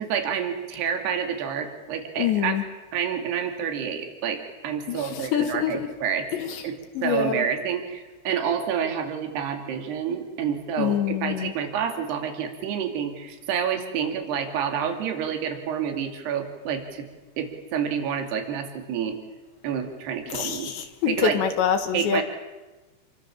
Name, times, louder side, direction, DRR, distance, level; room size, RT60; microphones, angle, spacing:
voice 1, 0.0-2.6 2.9-6.3 6.6-17.1 17.4-19.2 19.6-20.7 21.1-21.4 21.9-22.2, right 7 dB, 65° right, 5 dB, 4.5 m, -28 dB
voice 2, 2.2-2.6 4.9-5.9 6.3-6.6 7.0-7.5 10.8-11.5 20.3-22.2, left 9 dB, 75° left, 5 dB, 3.7 m, -26 dB
29.5 x 24.5 x 7.3 m, 1.2 s
omnidirectional pair, 5.4 m